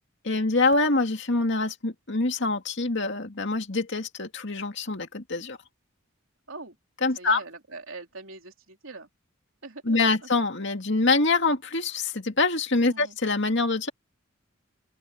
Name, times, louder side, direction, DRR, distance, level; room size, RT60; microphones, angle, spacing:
voice 1, 0.2-5.6 7.0-7.4 9.9-13.9, left 3 dB, 55° left, 2.3 m, -25 dB
voice 2, 7.2-9.1 9.6-10.3 12.9-13.2, right 3 dB, 70° right, 3.7 m, -42 dB
open air
head